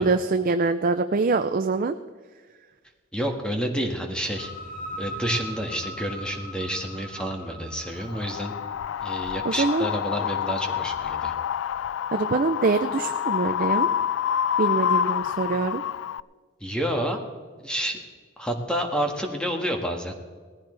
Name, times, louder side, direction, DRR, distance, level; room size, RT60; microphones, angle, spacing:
voice 1, 0.0-1.9 9.4-9.9 12.1-13.9 14.6-15.8, right 3 dB, 45° right, 8 dB, 0.5 m, -24 dB
voice 2, 3.1-4.5 5.0-8.5 9.0-11.3 16.6-17.2 17.6-18.0 18.4-20.1, equal, 5° left, 3 dB, 1.7 m, -29 dB
sound 1, 4.2-11.7, equal, 45° left, 2.4 m, -41 dB
Wind, 8.1-16.2, left 9 dB, 85° left, 0.3 m, -27 dB
19.0 x 15.0 x 3.4 m, 1.5 s
head